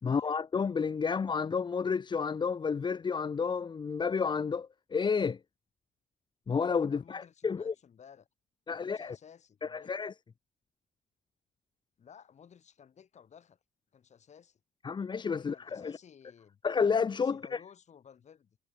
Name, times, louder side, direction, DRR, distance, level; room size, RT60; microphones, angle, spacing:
voice 1, 0.0-5.4 6.5-7.7 8.7-9.2 9.6-10.1 14.8-15.9 16.6-17.6, left 5 dB, 25° left, 0.9 m, -31 dB
voice 2, 6.9-8.3 8.7-9.9 12.0-13.6 13.9-14.6 15.3-16.6 17.2-18.6, left 7 dB, 45° left, 6.5 m, -56 dB
cardioid pair, 110°, 17 cm